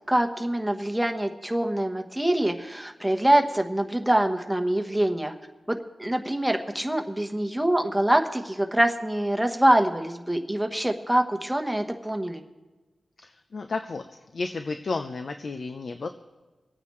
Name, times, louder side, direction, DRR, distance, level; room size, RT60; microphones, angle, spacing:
voice 1, 0.1-5.3 5.7-12.4, right 1 dB, 5° right, 5 dB, 1.2 m, -24 dB
voice 2, 13.2-14.0 14.3-16.1, left 3 dB, 60° left, 7 dB, 0.7 m, -32 dB
26.0 x 9.0 x 3.2 m, 1.2 s
wide cardioid pair, 85°, 0 cm